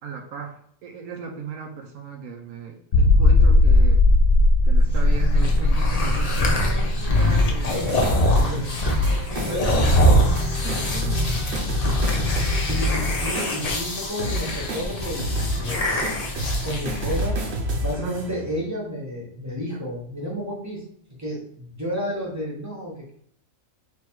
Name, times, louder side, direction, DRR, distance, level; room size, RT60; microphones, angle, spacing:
voice 1, 0.0-4.0 4.6-8.7 9.5-9.9 10.6-11.7 12.1-12.6 17.9-18.2, right 6 dB, 85° right, 2 dB, 1.1 m, -37 dB
sound 1, 2.9-8.4 8.7-8.8 9.3-9.4, left 2 dB, 65° left, 1.0 m, -18 dB
sound 2, 4.9-17.3, left 1 dB, 35° left, 0.7 m, -23 dB
sound 3, 7.6-18.6, right 1 dB, 55° right, 1.1 m, -30 dB
voice 2, 8.3-8.8 9.2-10.2 12.7-16.2 16.5-17.4 17.7-20.8 21.2-23.1, equal, 15° right, -3 dB, 1.2 m, -31 dB
3.4 x 3.2 x 4.6 m, 0.65 s
omnidirectional pair, 1.5 m